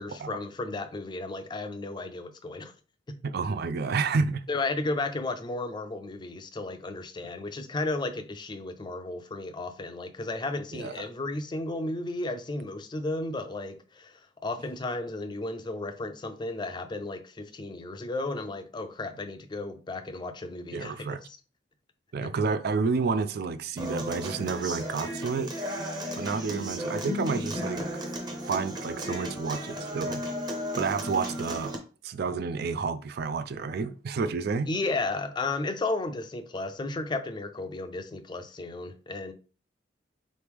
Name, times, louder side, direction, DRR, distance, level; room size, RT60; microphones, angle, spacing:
voice 1, 0.0-2.7 3.1-3.2 4.5-14.1 14.4-21.4 22.2-22.3 34.7-39.3, left 2 dB, 25° left, 0.4 m, -34 dB
voice 2, 3.2-4.5 10.7-11.1 20.7-21.3 22.1-25.5 26.2-27.8 28.4-30.2 30.7-31.8 32.0-34.7, right 4 dB, 60° right, 0.4 m, -30 dB
Human voice / Acoustic guitar, 23.8-31.8, equal, 25° right, 0.8 m, -34 dB
4.0 x 3.1 x 3.5 m
head